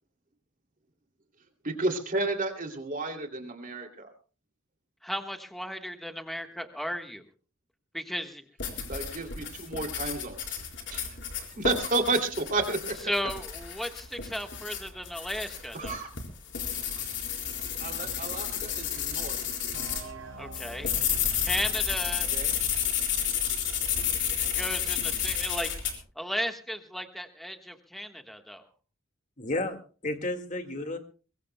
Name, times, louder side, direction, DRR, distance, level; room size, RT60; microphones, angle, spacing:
voice 1, 1.6-4.1 8.9-10.6 10.9-11.2 11.5-13.1 15.7-16.1 17.8-19.4 22.3-22.5, right 3 dB, 40° right, 4 dB, 2.7 m, -31 dB
voice 2, 5.0-7.2 7.9-8.4 13.1-16.0 20.4-20.9 21.4-22.3 24.4-25.7 26.1-28.7, equal, ahead, 5 dB, 1.3 m, -35 dB
sound 1, 8.6-20.1 20.5-25.9, left 8 dB, 60° left, 4.0 m, -31 dB
sound 2, 19.7-23.3, right 2 dB, 80° right, 3.8 m, -46 dB
voice 3, 29.4-31.0, left 2 dB, 40° left, 7 dB, 1.9 m, -32 dB
23.5 x 22.0 x 2.2 m, 0.36 s
head